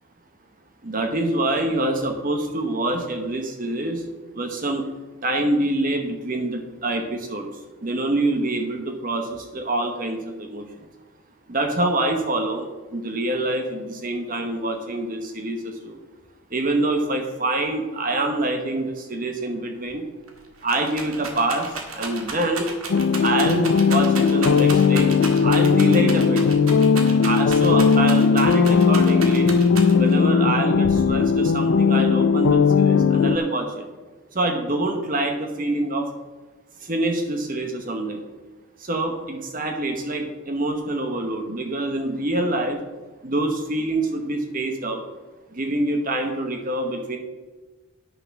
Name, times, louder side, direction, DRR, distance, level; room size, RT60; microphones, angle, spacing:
voice 1, 0.8-4.0 4.3-4.9 5.2-7.5 7.8-10.7 11.5-16.0 16.5-20.0 20.6-22.7 23.2-25.1 25.4-26.4 27.2-29.5 30.0-33.8 34.3-36.1 36.8-38.2 38.8-42.8 43.2-45.0 45.5-47.2, right 2 dB, 40° right, 4 dB, 1.0 m, -25 dB
Rattle, 19.9-20.0 20.3-30.2 30.8-31.5, right 4 dB, 90° right, 1.8 m, -34 dB
sound 1, 22.9-33.4, left 5 dB, 70° left, 0.4 m, -18 dB
9.9 x 6.8 x 5.8 m, 1.2 s
head